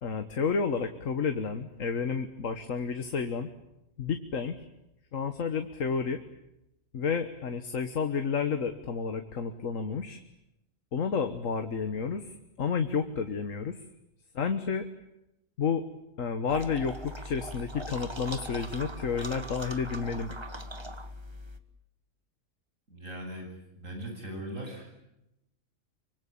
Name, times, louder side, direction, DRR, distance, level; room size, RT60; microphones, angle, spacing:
voice 1, 0.0-3.5 4.0-4.6 5.1-6.2 6.9-10.2 10.9-13.8 14.4-14.9 15.6-15.9 16.2-20.4, left 5 dB, 80° left, 8 dB, 1.7 m, -31 dB
sound 1, 16.5-21.6, equal, 20° right, 1.6 m, -40 dB
voice 2, 22.9-25.0, right 1 dB, 80° right, 2 dB, 8.5 m, -40 dB
25.0 x 24.5 x 8.7 m, 0.88 s
omnidirectional pair, 1.3 m